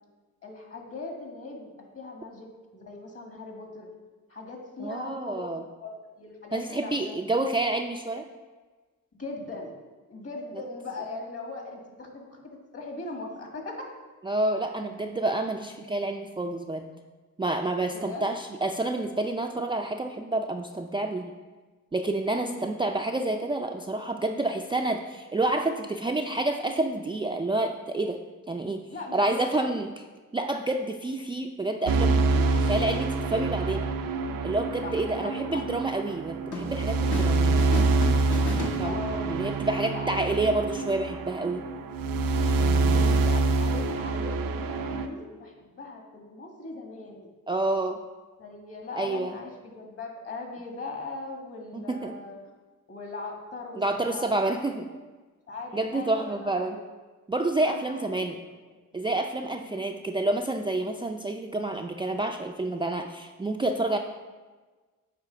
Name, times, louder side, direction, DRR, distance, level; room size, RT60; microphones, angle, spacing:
voice 1, 0.4-1.7 2.0-2.5 2.7-4.0 4.3-5.5 5.8-7.5 9.2-9.8 10.1-13.7 17.9-18.2 22.3-22.7 28.9-29.8 32.3-32.7 33.2-33.4 34.8-35.6 38.8-39.4 39.9-40.3 42.8-47.3 48.4-52.4 52.9-54.5 54.9-55.0 55.5-56.8 57.6-58.3 59.5-59.8 63.9-64.0, left 3 dB, 45° left, 1 dB, 1.8 m, -39 dB
voice 2, 4.8-5.6 6.5-8.3 14.2-16.9 17.4-21.3 21.9-28.2 28.5-28.8 29.1-29.9 30.3-32.2 32.7-33.9 34.4-37.6 38.5-41.7 42.6-43.1 47.5-48.0 49.0-49.4 51.7-52.1 53.7-54.9 55.7-56.8 57.3-58.4 58.9-64.0, right 2 dB, 15° right, 3 dB, 0.4 m, -29 dB
sound 1, 31.9-45.1, right 3 dB, 85° right, 0.6 m, -26 dB
sound 2, 36.5-37.3 37.6-39.3, left 2 dB, 60° left, 1.2 m, -35 dB
8.7 x 3.0 x 5.6 m, 1.3 s
cardioid pair, 65°, 33 cm